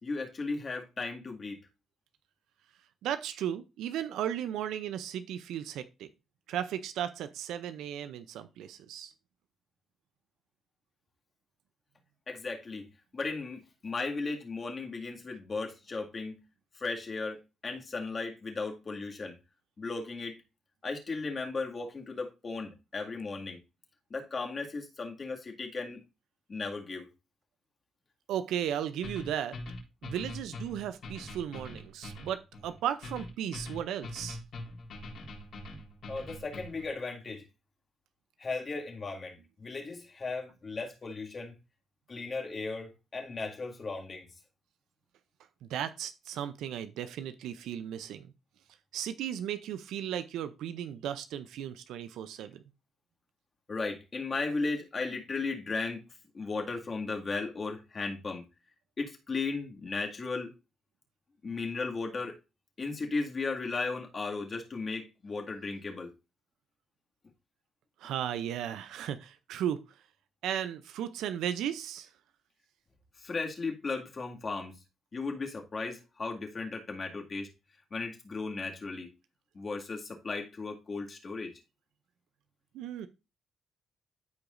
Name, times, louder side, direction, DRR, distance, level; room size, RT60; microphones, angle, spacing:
voice 1, 0.0-1.6 12.3-12.8 13.1-16.3 16.8-19.3 19.8-20.4 20.8-23.6 24.1-26.0 26.5-27.1 36.1-37.5 38.4-41.5 42.1-44.3 53.7-56.0 56.3-58.4 59.0-60.5 61.4-62.3 62.8-66.1 73.2-74.7 75.1-77.5 77.9-79.1 79.5-81.5, left 3 dB, 35° left, 2.1 m, -36 dB
voice 2, 3.0-6.1 6.5-9.1 28.3-29.5 30.0-34.4 45.6-48.3 48.9-52.6 68.0-69.8 70.4-72.1 82.7-83.1, right 10 dB, 85° right, 0.5 m, -35 dB
sound 1, 29.0-36.9, left 1 dB, 60° left, 4.0 m, -43 dB
13.5 x 4.9 x 2.6 m
cardioid pair, 90°, 0 cm